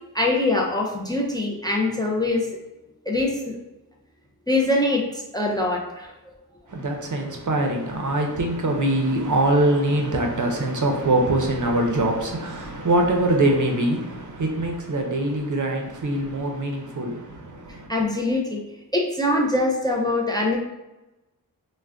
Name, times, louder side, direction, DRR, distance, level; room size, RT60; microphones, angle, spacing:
voice 1, 0.1-2.5 3.1-3.5 4.5-6.1 17.9-18.6 18.9-20.6, left 2 dB, 10° left, 0.4 m, -23 dB
voice 2, 6.7-17.9, right 1 dB, 55° right, 0.5 m, -23 dB
2.4 x 2.1 x 3.3 m
wide cardioid pair, 60°, 37 cm